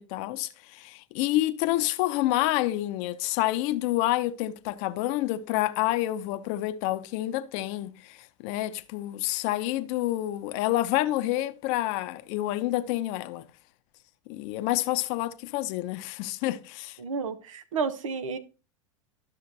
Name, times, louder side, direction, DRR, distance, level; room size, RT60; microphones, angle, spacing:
voice 1, 0.0-13.5 14.3-17.0, left 15 dB, 55° left, 0.7 m, -28 dB
voice 2, 17.0-18.4, right 5 dB, 85° right, 1.0 m, -31 dB
12.0 x 6.3 x 2.7 m
hypercardioid pair, 105°, 16 cm